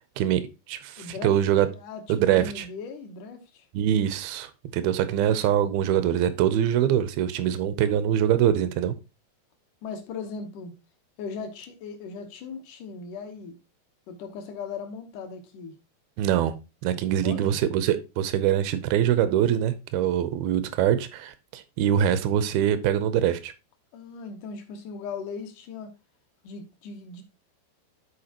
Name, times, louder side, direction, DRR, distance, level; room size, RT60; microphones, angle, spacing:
voice 1, 0.2-1.7 2.1-2.7 3.7-8.9 16.2-16.5 16.8-23.5, right 10 dB, 80° right, 2.2 m, -24 dB
voice 2, 1.0-1.4 1.7-3.7 9.8-10.7 11.2-13.6 14.1-15.7 16.9-17.6 23.9-25.9 26.4-27.2, left 5 dB, 75° left, 1.9 m, -38 dB
11.5 x 4.5 x 2.9 m
omnidirectional pair, 5.0 m